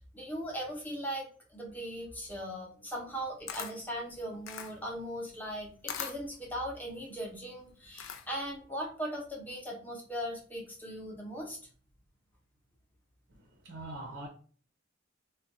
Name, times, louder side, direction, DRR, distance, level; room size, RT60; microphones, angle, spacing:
voice 1, 0.1-11.6, equal, 10° left, 0.8 m, -39 dB
Camera, 3.1-8.5, left 7 dB, 75° left, 0.4 m, -43 dB
voice 2, 13.3-14.3, right 2 dB, 60° right, 0.6 m, -43 dB
2.5 x 2.2 x 4.0 m
head